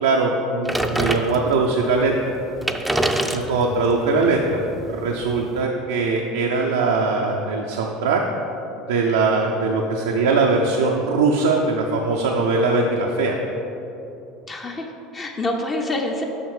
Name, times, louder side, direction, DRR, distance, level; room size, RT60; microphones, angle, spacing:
voice 1, 0.0-2.3 3.2-4.6 4.9-8.2 8.9-13.4, right 3 dB, 85° right, 0 dB, 0.6 m, -21 dB
sound 1, 0.7-1.7 2.3-2.4 2.6-5.6, right 1 dB, 5° right, 0.5 m, -26 dB
voice 2, 14.5-16.2, left 1 dB, 30° left, 1 dB, 0.8 m, -27 dB
6.4 x 6.1 x 5.4 m, 3.0 s
hypercardioid pair, 85°, 0 cm